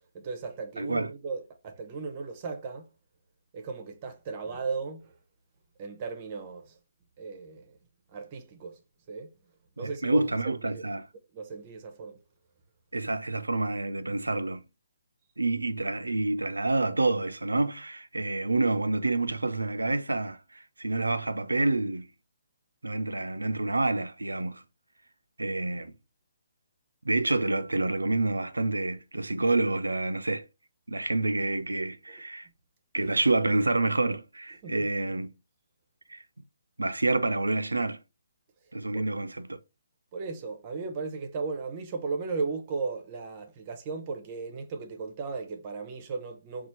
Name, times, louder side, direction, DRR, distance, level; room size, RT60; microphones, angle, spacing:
voice 1, 0.1-2.9 3.5-5.1 5.8-6.8 7.2-7.7 8.1-8.8 9.1-9.3 9.8-10.8 11.3-12.2 32.1-32.2 34.6-34.9 38.9-39.0 40.1-46.7, right 4 dB, 35° right, 0.7 m, -36 dB
voice 2, 0.8-1.1 9.8-11.1 12.9-14.6 15.4-20.4 20.8-22.1 22.8-24.6 25.4-25.9 27.0-30.5 30.9-32.5 32.9-35.3 36.1-36.2 36.8-38.0 38.7-39.6, right 2 dB, 85° right, 0.5 m, -28 dB
4.3 x 2.4 x 4.2 m
figure-of-eight pair, 140°, 0 cm